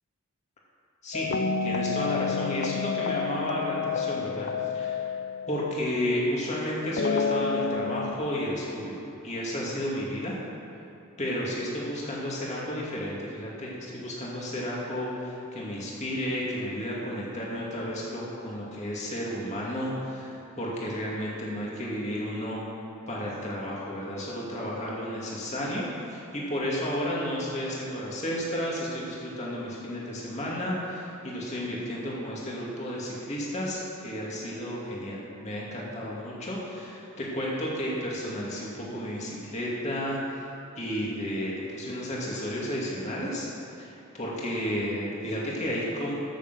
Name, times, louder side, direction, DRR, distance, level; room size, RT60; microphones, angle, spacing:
sound 1, 1.1-6.3 7.0-8.2, left 5 dB, 50° left, 0.5 m, -29 dB
voice 1, 1.6-5.1 5.5-10.4 11.2-22.6 23.1-40.5 40.8-43.5 43.8-46.1, equal, 30° left, -5 dB, 2.5 m, -32 dB
13.5 x 6.9 x 7.6 m, 2.8 s
head